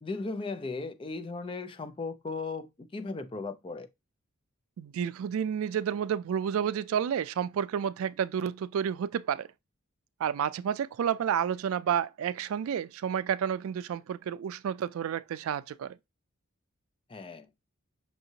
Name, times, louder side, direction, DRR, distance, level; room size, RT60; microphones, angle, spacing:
voice 1, 0.0-3.9 17.1-17.5, left 3 dB, 25° left, 0.3 m, -37 dB
voice 2, 4.8-9.5 10.2-16.0, right 8 dB, 75° right, 0.3 m, -30 dB
5.7 x 2.6 x 2.7 m
head